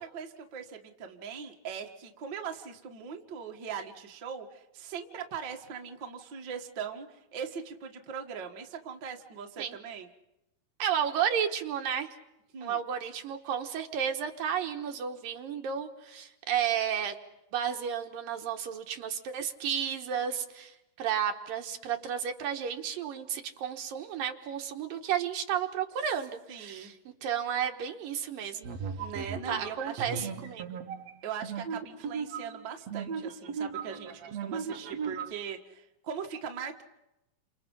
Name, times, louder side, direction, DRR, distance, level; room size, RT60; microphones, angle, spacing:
voice 1, 0.0-10.1 12.5-12.8 26.5-26.9 29.0-30.4 31.2-36.8, right 7 dB, 40° right, 2 dB, 1.9 m, -40 dB
voice 2, 10.8-12.1 12.6-17.2 17.5-27.0 27.2-28.7 29.5-30.8, right 8 dB, 70° right, 4 dB, 3.1 m, -32 dB
sound 1, 28.6-35.3, right 6 dB, 55° right, 2.1 m, -37 dB
29.5 x 27.5 x 5.7 m, 0.90 s
omnidirectional pair, 4.2 m